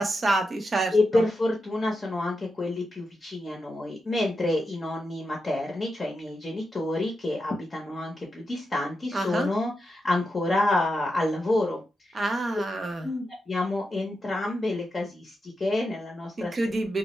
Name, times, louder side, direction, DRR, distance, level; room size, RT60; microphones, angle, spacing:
voice 1, 0.0-1.2 9.1-9.5 12.1-13.1 16.4-17.0, right 2 dB, 35° right, 5 dB, 0.6 m, -27 dB
voice 2, 0.9-11.8 12.1-12.2 13.0-16.5, left 2 dB, 25° left, -1 dB, 0.7 m, -28 dB
2.2 x 2.0 x 3.0 m, 0.28 s
cardioid pair, 90°, 0 cm